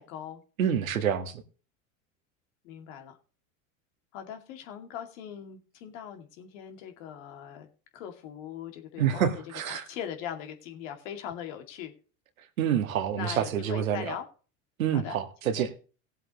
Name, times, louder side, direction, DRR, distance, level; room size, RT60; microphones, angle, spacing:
voice 1, 0.0-0.4 2.6-3.2 4.1-7.7 7.9-11.9 13.1-14.3 14.9-15.2 15.6-15.7, left 9 dB, 70° left, 2.4 m, -40 dB
voice 2, 0.6-1.4 9.0-9.8 12.6-14.1 14.8-15.7, right 9 dB, 85° right, 1.8 m, -27 dB
18.0 x 7.8 x 3.0 m
hypercardioid pair, 85°, 40 cm